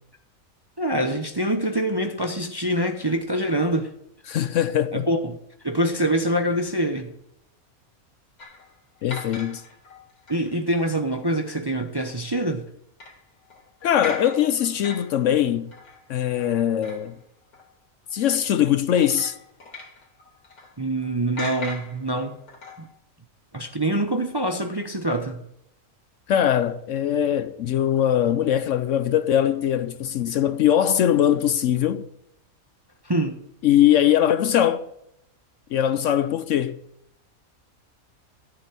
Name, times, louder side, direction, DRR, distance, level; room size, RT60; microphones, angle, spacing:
voice 1, 0.8-3.9 4.9-5.4 5.6-7.1 10.3-12.6 20.8-22.4 22.8-22.9 23.5-25.4 33.0-33.4, right 1 dB, 25° right, 0.6 m, -25 dB
voice 2, 4.3-5.1 9.0-9.6 13.8-15.7 16.1-17.2 18.1-19.4 26.3-32.1 33.6-34.9 35.7-36.8, left 10 dB, 65° left, 0.9 m, -21 dB
sound 1, 8.4-10.6 11.1-11.6 12.0-12.2 13.0-17.3 17.5-17.7 18.1-18.6 19.0-21.1 21.4-22.9, left 3 dB, 85° left, 2.4 m, -40 dB
13.5 x 8.2 x 6.2 m
omnidirectional pair, 1.5 m